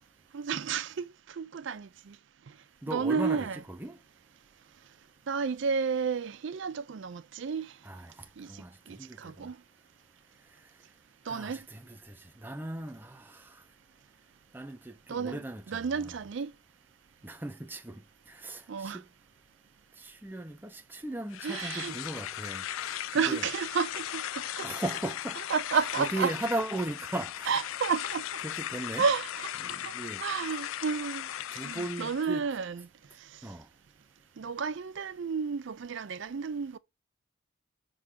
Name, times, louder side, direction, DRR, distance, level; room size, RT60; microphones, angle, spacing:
voice 1, 0.3-2.2 2.9-3.6 5.3-7.7 8.4-9.6 11.3-11.7 15.1-15.4 15.7-16.5 18.7-19.0 21.4-21.9 23.1-24.7 25.5-26.3 27.5-28.2 29.0-29.9 30.2-31.3 31.6-32.9 33.2-33.3 34.4-36.8, right 5 dB, 60° right, 0.4 m, -32 dB
voice 2, 2.8-4.0 7.9-8.1 8.5-9.5 11.3-13.6 14.5-16.1 17.2-18.0 18.3-19.0 20.0-23.0 23.3-23.4 24.6-25.4 26.0-27.5 28.4-29.0 29.6-30.2 31.5-32.4 33.4-33.7, right 1 dB, 10° right, 0.5 m, -37 dB
sound 1, 21.3-32.3, left 12 dB, 75° left, 0.3 m, -37 dB
6.7 x 3.9 x 6.3 m
head